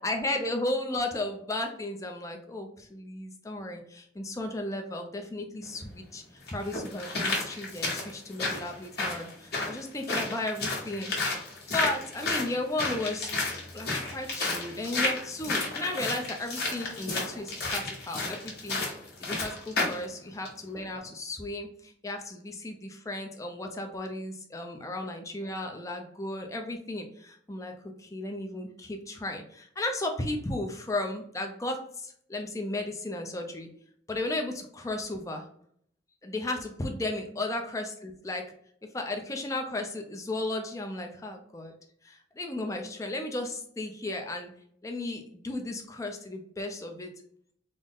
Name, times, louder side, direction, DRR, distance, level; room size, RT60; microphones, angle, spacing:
voice 1, 0.0-11.1 11.7-13.3 13.7-18.8 19.2-27.7 28.0-33.7 34.1-35.4 36.2-38.5 38.9-41.7 42.0-44.5 44.8-47.1, left 2 dB, 15° left, 3 dB, 0.4 m, -34 dB
sound 1, 5.6-5.7 6.5-20.0 20.4-20.5, left 3 dB, 50° left, 1.2 m, -32 dB
3.8 x 2.0 x 3.5 m, 0.66 s
head